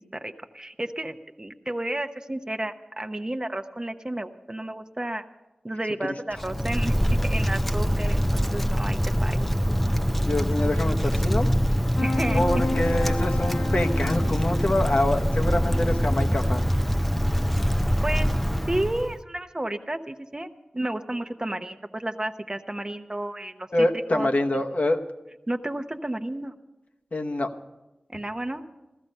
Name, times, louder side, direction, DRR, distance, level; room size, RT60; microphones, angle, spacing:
voice 1, 0.0-5.2 5.6-6.9 7.2-9.5 12.0-12.4 18.0-18.3 18.7-20.5 20.7-24.3 25.5-26.5 28.1-28.6, right 1 dB, 25° right, 7 dB, 0.8 m, -32 dB
Wind, 6.3-19.2, equal, 5° left, 0.6 m, -24 dB
voice 2, 10.2-11.5 12.3-16.7 23.7-25.0 27.1-27.5, left 1 dB, 60° left, 4 dB, 1.0 m, -25 dB
sound 1, 12.0-16.8, left 3 dB, 90° left, 1.0 m, -34 dB
16.0 x 13.5 x 5.4 m, 1.0 s
wide cardioid pair, 65°, 3 cm